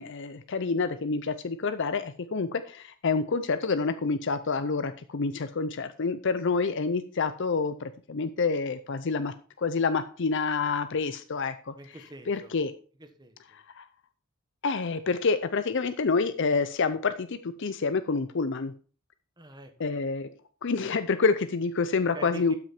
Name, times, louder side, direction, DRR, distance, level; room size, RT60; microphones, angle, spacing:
voice 1, 0.0-11.7 12.3-12.7 13.8-13.9 14.6-18.7 19.8-20.3 20.6-22.5, left 4 dB, 55° left, 11 dB, 0.6 m, -28 dB
voice 2, 11.7-12.6 13.0-13.3 19.4-20.0 22.1-22.6, right 1 dB, 20° right, 6 dB, 1.3 m, -45 dB
12.5 x 6.2 x 4.4 m, 0.41 s
head